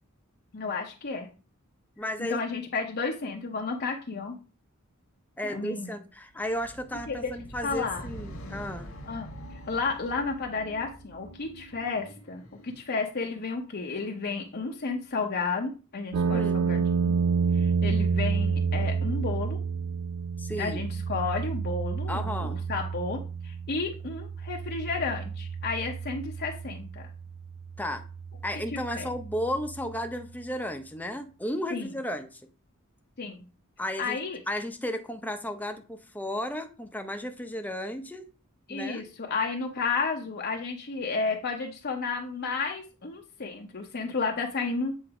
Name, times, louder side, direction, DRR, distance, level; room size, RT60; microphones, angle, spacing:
voice 1, 0.5-1.3 2.2-4.3 5.4-5.9 7.1-7.3 7.6-8.0 9.1-17.2 17.5-19.6 20.6-27.0 28.9-29.1 31.7-31.9 33.2-33.4 34.0-34.4 38.7-44.9, left 4 dB, 50° left, 0.8 m, -32 dB
voice 2, 2.0-2.4 5.4-8.9 16.2-16.7 20.4-20.8 22.1-22.6 27.8-28.0 28.4-32.4 33.8-34.2 34.5-38.3 38.7-39.0, left 1 dB, 10° left, 0.7 m, -34 dB
sound 1, 6.4-12.9, equal, 75° left, 1.5 m, -45 dB
sound 2, 16.1-30.2, right 5 dB, 65° right, 0.4 m, -30 dB
7.9 x 2.7 x 4.8 m
head